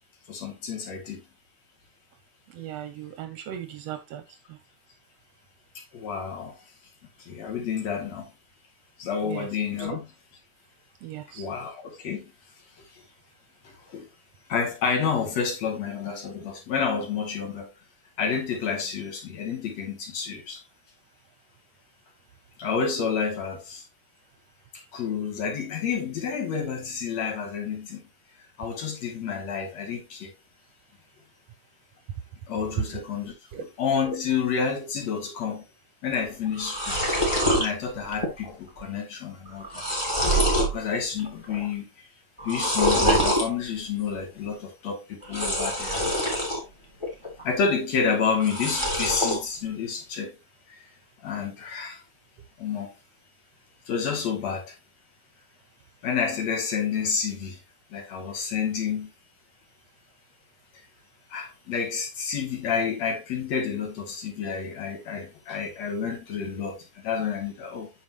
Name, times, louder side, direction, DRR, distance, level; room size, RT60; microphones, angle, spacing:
voice 1, 0.3-1.2 5.9-6.6 7.2-8.3 9.0-10.1 11.3-12.3 12.9-13.0 13.6-14.1 14.5-17.7 18.2-20.6 22.6-23.8 24.7-28.0 28.6-30.3 32.5-35.6 36.0-37.0 37.6-39.8 40.7-42.1 42.4-46.1 47.4-50.4 50.7-50.8 51.2-52.0 52.6-52.9 53.9-54.7 56.0-57.6 57.9-59.1 61.3-67.9, left 6 dB, 65° left, 3.2 m, -29 dB
voice 2, 2.6-4.2 9.3-9.4 11.0-11.4 33.5-33.6, right 11 dB, 75° right, 1.7 m, -37 dB
sound 1, 36.1-36.2 36.5-37.7 38.1-38.5 38.8-38.9 39.5-40.7 41.2-41.7 42.4-43.5 45.2-46.6 47.0-47.6 48.3-49.4, equal, 10° left, 2.5 m, -25 dB
8.5 x 5.9 x 2.9 m
omnidirectional pair, 3.4 m